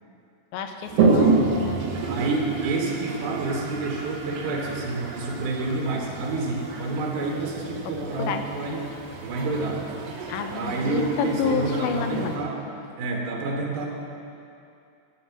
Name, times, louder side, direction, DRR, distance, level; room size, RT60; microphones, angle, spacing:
voice 1, 0.5-1.8 8.2-8.4 10.3-12.4, left 6 dB, 90° left, 7 dB, 2.5 m, -29 dB
Toilet flush, 0.8-12.4, right 3 dB, 60° right, 1.9 m, -28 dB
voice 2, 2.1-8.9 9.2-9.9 10.5-12.6 13.0-13.9, right 3 dB, 85° right, -1 dB, 3.3 m, -28 dB
12.0 x 8.7 x 5.8 m, 2.6 s
omnidirectional pair, 4.1 m